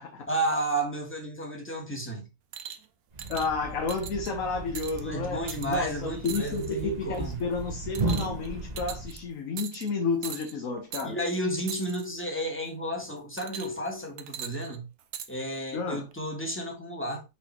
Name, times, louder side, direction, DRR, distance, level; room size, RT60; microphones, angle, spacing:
voice 1, 0.3-2.3 5.0-7.4 11.0-14.8 15.3-17.2, right 1 dB, 10° left, 1.5 m, -32 dB
sound 1, 2.5-2.9 3.2-3.5 3.9-4.3 4.8-5.0 5.5-5.8 6.3-6.7 7.1-7.4 8.0-8.5 8.8-9.2 9.6-9.9 10.2-10.5 10.9-11.1 11.7-12.1 13.4-13.9 14.2-15.3 16.1-16.2, right 9 dB, 85° right, 1.2 m, -40 dB
Thump thud, 3.1-9.3, right 2 dB, 35° right, 1.0 m, -36 dB
voice 2, 3.3-11.2 15.7-16.1, left 4 dB, 65° left, 1.4 m, -31 dB
6.0 x 4.1 x 4.2 m
omnidirectional pair, 1.5 m